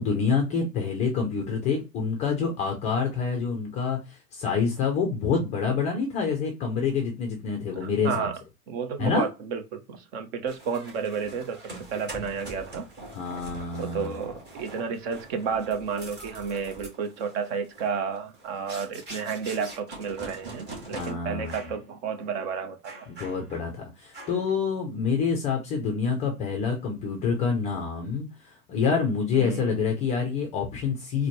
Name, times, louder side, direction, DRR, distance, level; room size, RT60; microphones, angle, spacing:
voice 1, 0.0-8.3 9.0-9.3 13.1-14.2 20.9-21.7 23.1-31.3, left 5 dB, 15° left, 0.4 m, -27 dB
voice 2, 7.7-8.3 8.7-11.6 11.9-12.9 13.8-23.1 29.3-29.8, right 6 dB, 45° right, 0.8 m, -31 dB
sound 1, 10.5-21.1 21.4-21.8 22.2-22.3 22.8-23.7 24.1-24.5, right 2 dB, 20° right, 1.5 m, -43 dB
4.0 x 2.2 x 3.0 m
hypercardioid pair, 115°, 46 cm